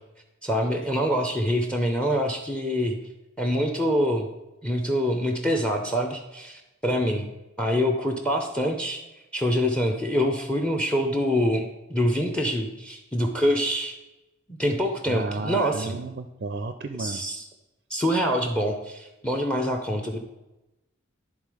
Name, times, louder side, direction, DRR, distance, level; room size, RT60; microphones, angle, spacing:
voice 1, 0.4-3.0 3.4-4.3 4.6-7.3 7.6-9.0 9.3-13.9 14.5-15.9 17.0-17.4 17.9-20.2, equal, 5° left, 4 dB, 0.6 m, -25 dB
voice 2, 15.1-17.2, right 3 dB, 45° right, 8 dB, 0.4 m, -33 dB
11.0 x 3.7 x 4.8 m, 1.0 s
head